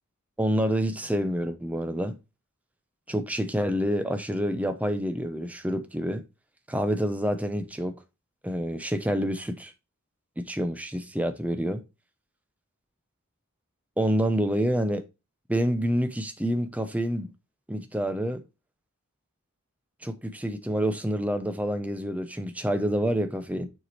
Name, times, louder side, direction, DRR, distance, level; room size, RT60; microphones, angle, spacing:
voice 1, 0.4-2.2 3.1-6.2 6.7-7.9 8.4-9.7 10.4-11.8 14.0-15.0 15.5-17.3 17.7-18.4 20.0-23.7, equal, 5° right, 0.6 m, -27 dB
6.8 x 4.8 x 2.9 m
head